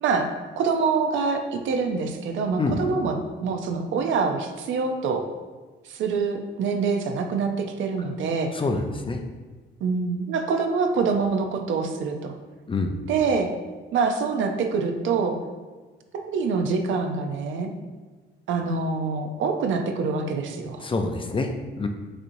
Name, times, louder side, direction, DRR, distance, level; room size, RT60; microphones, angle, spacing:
voice 1, 0.0-5.2 5.8-8.5 9.8-12.4 13.1-13.5 13.9-15.4 16.1-17.7 18.5-20.9, right 4 dB, 75° right, 4 dB, 0.6 m, -25 dB
voice 2, 8.5-9.2 12.7-13.0 20.8-21.5 21.8-21.9, left 3 dB, 25° left, 5 dB, 0.5 m, -26 dB
6.5 x 2.9 x 2.7 m, 1.4 s
cardioid pair, 90°, 20 cm